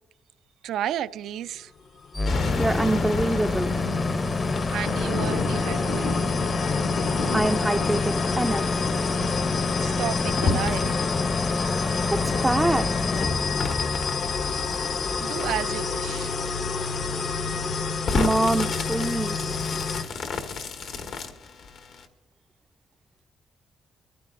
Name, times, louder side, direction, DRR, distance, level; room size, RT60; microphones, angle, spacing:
voice 1, 0.6-1.7 4.7-6.3 9.5-11.0 14.9-17.6 18.0-18.1, right 11 dB, 80° right, 0.4 m, -34 dB
sound 1, 2.0-20.0, left 5 dB, 60° left, 0.8 m, -30 dB
sound 2, 2.1-16.1, left 2 dB, 25° left, 0.7 m, -28 dB
sound 3, 2.2-22.0, left 4 dB, 75° left, 1.4 m, -33 dB
voice 2, 2.6-3.7 7.1-8.8 11.6-12.9 17.7-17.9 18.1-19.6, right 1 dB, 10° right, 0.4 m, -26 dB
22.5 x 14.5 x 2.5 m
cardioid pair, 90°, 0 cm